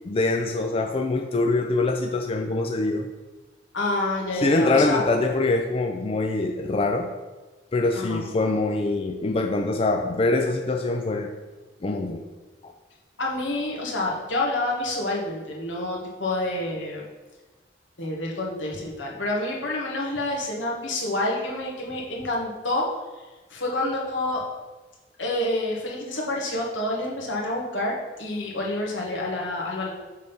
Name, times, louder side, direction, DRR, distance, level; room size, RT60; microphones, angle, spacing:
voice 1, 0.1-3.1 4.3-7.1 7.7-11.3 11.8-12.2 12.6-12.7, left 2 dB, 30° left, 3 dB, 0.4 m, -24 dB
voice 2, 3.7-5.2 7.9-8.2 13.2-17.0 18.0-22.9 23.5-24.4 25.2-29.9, left 1 dB, 80° left, -2 dB, 1.5 m, -28 dB
6.4 x 3.6 x 5.6 m, 1.2 s
head